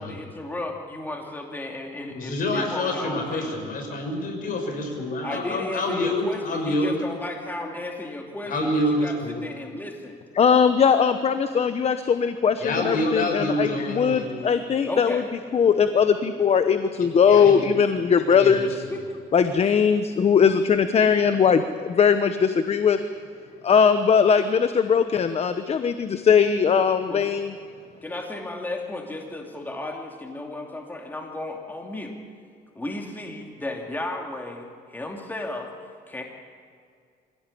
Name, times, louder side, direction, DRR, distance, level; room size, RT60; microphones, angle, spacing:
voice 1, 0.0-3.5 5.2-9.1 9.4-10.2 14.9-15.3 18.9-19.0 27.1-27.2 28.0-32.1 32.7-35.7 36.1-36.2, left 2 dB, 10° left, 1 dB, 2.7 m, -34 dB
voice 2, 2.1-6.9 8.5-9.4 12.6-14.4 17.3-17.6 18.3-18.9, left 1 dB, 55° left, 3 dB, 6.3 m, -27 dB
voice 3, 10.4-15.2 15.5-18.8 19.3-23.0 23.6-27.5, left 6 dB, 40° left, 10 dB, 1.0 m, -20 dB
24.5 x 16.5 x 8.6 m, 2.2 s
cardioid pair, 110°, 17 cm